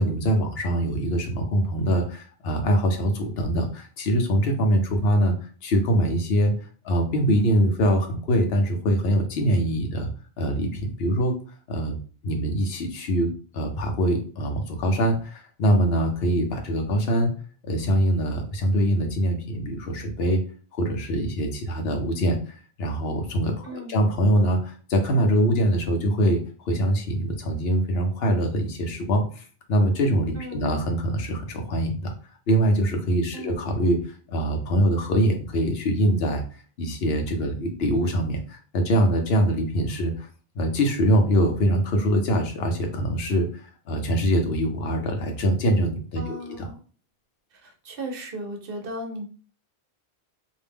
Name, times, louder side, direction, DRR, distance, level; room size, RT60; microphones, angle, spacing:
voice 1, 0.0-5.3 5.6-10.1 10.4-11.3 11.7-12.0 12.2-17.3 17.7-20.4 20.7-32.1 32.5-36.4 36.8-40.3 40.5-46.7, equal, 75° left, 4 dB, 0.9 m, -23 dB
voice 2, 23.6-24.0 30.4-30.8 33.3-33.6 46.2-46.8 47.5-49.3, right 1 dB, 65° right, 3 dB, 0.9 m, -36 dB
2.5 x 2.1 x 3.3 m, 0.39 s
omnidirectional pair, 1.0 m